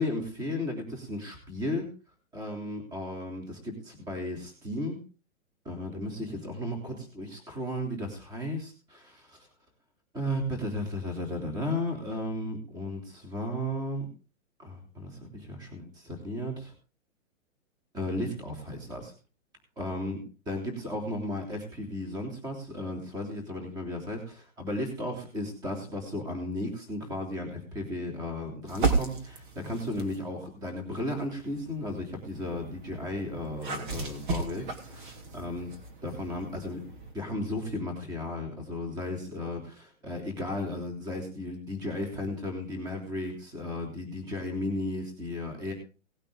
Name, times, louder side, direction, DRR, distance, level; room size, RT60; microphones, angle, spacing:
voice 1, 0.0-1.9 2.3-5.0 5.6-9.5 10.1-14.0 14.6-16.7 17.9-19.1 19.8-35.7 36.0-36.8 37.1-45.7, left 1 dB, 10° right, 3 dB, 3.2 m, -34 dB
sound 1, 28.7-30.3 30.9-37.1, right 4 dB, 40° right, 3.2 m, -35 dB
18.5 x 8.9 x 3.8 m, 0.34 s
hypercardioid pair, 175°, 40 cm